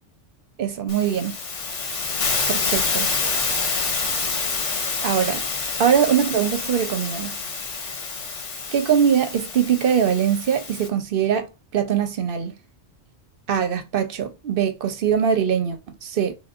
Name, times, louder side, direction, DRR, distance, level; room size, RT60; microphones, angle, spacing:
voice 1, 0.6-1.4 2.5-3.1 5.0-5.4 5.8-7.4 8.7-12.5 13.5-16.4, right 8 dB, 55° right, 0.7 m, -22 dB
Hiss, 0.9-10.9, left 4 dB, 75° left, 1.3 m, -27 dB
5.8 x 2.3 x 2.4 m
omnidirectional pair, 1.2 m